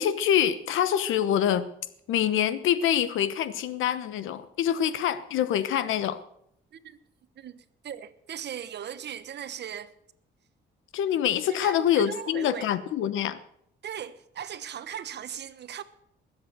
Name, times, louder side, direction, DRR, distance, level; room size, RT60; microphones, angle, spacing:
voice 1, 0.0-1.7 2.1-6.2 10.9-13.4, left 10 dB, 85° left, 1.1 m, -25 dB
voice 2, 7.4-9.9 11.5-12.6 13.8-15.8, right 9 dB, 60° right, 1.1 m, -38 dB
20.0 x 7.8 x 6.9 m
cardioid pair, 90°, 20 cm